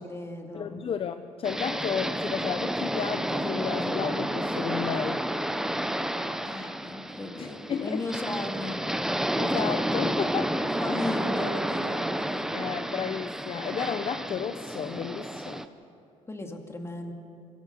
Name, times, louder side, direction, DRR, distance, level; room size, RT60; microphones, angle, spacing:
voice 1, 0.0-0.8 6.2-8.8 9.6-9.8 10.6-12.5 16.3-17.1, left 2 dB, 20° left, 4 dB, 2.4 m, -36 dB
voice 2, 0.5-5.3 7.4-8.1 9.4-10.6 10.9-11.0 12.5-15.7, left 7 dB, 45° left, 10 dB, 0.7 m, -32 dB
sound 1, 1.4-15.7, right 1 dB, 5° right, 0.8 m, -30 dB
22.5 x 17.5 x 6.9 m, 2.6 s
cardioid pair, 90°, 14 cm